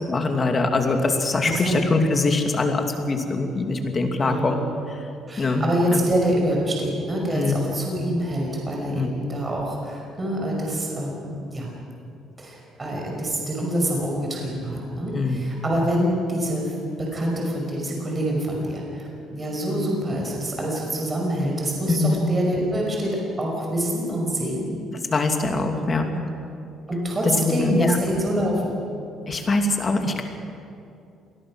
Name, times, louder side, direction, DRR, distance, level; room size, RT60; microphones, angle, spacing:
voice 1, 0.0-4.5 5.4-5.6 5.9-6.0 7.3-7.5 8.9-9.1 15.1-15.4 21.9-22.2 25.1-26.3 27.4-28.0 29.3-30.2, left 3 dB, 30° left, 4 dB, 2.5 m, -23 dB
voice 2, 1.4-1.9 4.2-4.6 5.3-11.7 12.4-24.7 26.9-28.8, equal, 20° right, -1 dB, 5.6 m, -26 dB
26.5 x 20.0 x 6.4 m, 2.6 s
cardioid pair, 135°, 0 cm